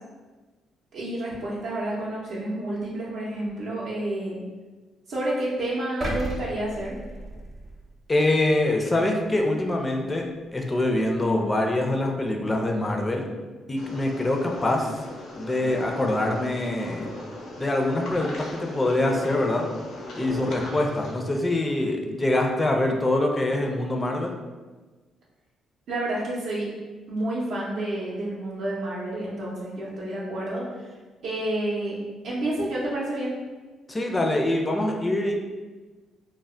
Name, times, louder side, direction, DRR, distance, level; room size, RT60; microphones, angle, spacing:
voice 1, 0.9-4.4 5.1-7.0 25.9-26.7 27.1-30.9 31.2-32.0 32.2-33.4, right 1 dB, 75° right, -6 dB, 0.5 m, -29 dB
sound 1, 6.0-8.2 8.6-8.8, right 1 dB, 30° right, 0.6 m, -33 dB
voice 2, 8.1-10.3 10.5-13.3 13.7-15.0 15.3-17.1 17.6-19.7 20.1-24.3 33.9-35.3, left 1 dB, 20° left, 2 dB, 0.4 m, -24 dB
sound 2, 13.8-21.1, left 1 dB, 75° left, 0.6 m, -38 dB
2.2 x 2.0 x 3.6 m, 1.3 s
cardioid pair, 90°, 0 cm